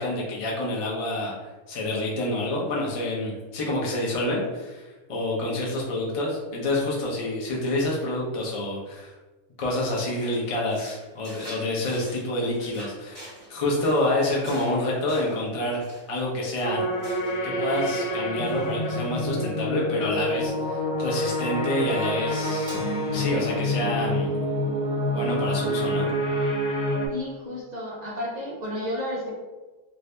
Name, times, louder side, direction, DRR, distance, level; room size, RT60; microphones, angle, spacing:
voice 1, 0.0-1.3 1.7-9.1 9.6-15.8 16.1-16.8 17.4-22.7 23.1-24.3 25.1-26.1, left 1 dB, 40° left, -4 dB, 0.5 m, -28 dB
sound 1, 9.6-17.5 17.7-18.1 18.4-19.2, equal, 20° right, 1.0 m, -47 dB
sound 2, 16.6-27.1, equal, 75° left, 1.1 m, -27 dB
Crash cymbal, 22.7-25.2, right 2 dB, 5° left, 0.7 m, -46 dB
voice 2, 27.1-29.3, left 1 dB, 55° right, -5 dB, 0.4 m, -32 dB
2.7 x 2.6 x 3.2 m, 1.2 s
omnidirectional pair, 1.5 m